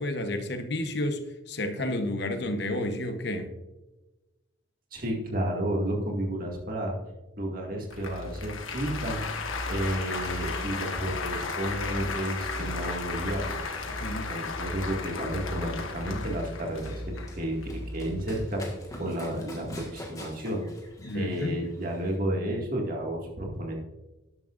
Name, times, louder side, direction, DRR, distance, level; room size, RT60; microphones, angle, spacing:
voice 1, 0.0-3.5 14.0-14.3 21.0-21.5, left 1 dB, 55° left, 7 dB, 1.0 m, -31 dB
voice 2, 4.9-7.0 7.4-9.2 9.7-13.6 14.1-20.6 21.1-23.8, right 1 dB, 45° right, 0 dB, 2.1 m, -32 dB
Applause, 7.9-18.5, left 3 dB, 85° left, 1.4 m, -34 dB
Run, 16.1-22.2, left 1 dB, 15° left, 1.6 m, -45 dB
12.5 x 10.5 x 2.5 m, 1.1 s
head